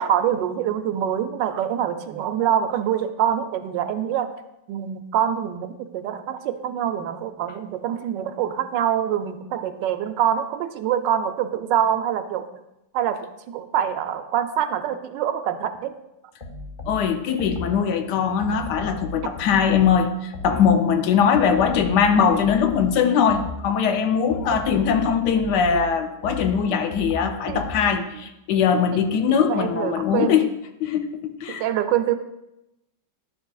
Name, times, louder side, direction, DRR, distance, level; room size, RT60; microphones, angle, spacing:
voice 1, 0.0-4.3 4.7-12.5 12.9-15.9 24.5-24.6 25.7-25.9 27.5-27.6 27.9-28.0 29.5-30.5 31.5-32.1, right 9 dB, 85° right, 9 dB, 1.3 m, -25 dB
sound 1, 16.4-17.9 18.4-20.9 21.3-23.8 24.3-28.1, left 2 dB, 40° left, 0.7 m, -36 dB
voice 2, 16.9-30.5 30.8-31.6, left 7 dB, 75° left, 7 dB, 1.2 m, -21 dB
11.0 x 6.8 x 2.3 m, 0.91 s
omnidirectional pair, 1.9 m